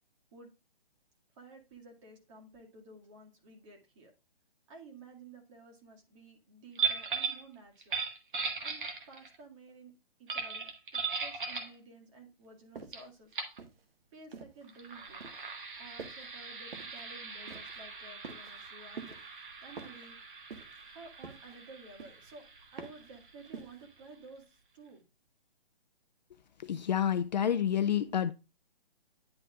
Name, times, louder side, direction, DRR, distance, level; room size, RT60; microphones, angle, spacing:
voice 1, 1.4-4.1 4.7-8.0 8.6-9.9 10.2-13.3 14.1-15.3 15.8-19.2 19.6-20.2 20.9-22.4 22.7-24.4 24.7-25.0, right 3 dB, 30° right, 2.0 m, -53 dB
sound 1, 6.7-7.4 7.8-9.3 10.3-11.7 12.9-13.0 13.3-13.6 14.6-23.9, right 5 dB, 60° right, 1.6 m, -39 dB
sound 2, 12.7-13.1 13.6-14.7 15.2-15.5 16.0-16.3 16.7-17.0 17.5-17.8 18.2-18.7 19.0-19.3 19.8-20.1 20.5-20.9 21.2-21.6 22.0-22.3 22.8-23.1 23.5-23.8, right 5 dB, 80° right, 1.5 m, -47 dB
voice 2, 26.6-28.3, left 9 dB, 50° left, 0.5 m, -29 dB
10.5 x 4.2 x 2.4 m
hypercardioid pair, 160°, 29 cm